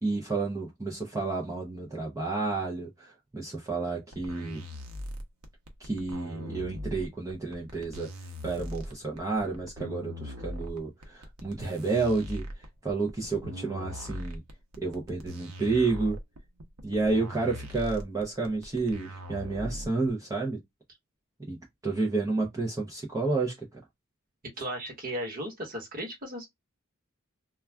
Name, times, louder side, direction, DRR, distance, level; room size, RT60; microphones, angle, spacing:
voice 1, 0.0-4.6 5.8-12.5 12.8-14.4 14.8-16.2 16.8-20.6 21.5-21.6 21.8-23.8, right 3 dB, 15° right, 0.5 m, -30 dB
sound 1, 4.1-20.1, left 1 dB, 85° right, 0.7 m, -40 dB
voice 2, 24.6-26.5, equal, 40° right, 1.1 m, -36 dB
2.3 x 2.2 x 3.3 m
head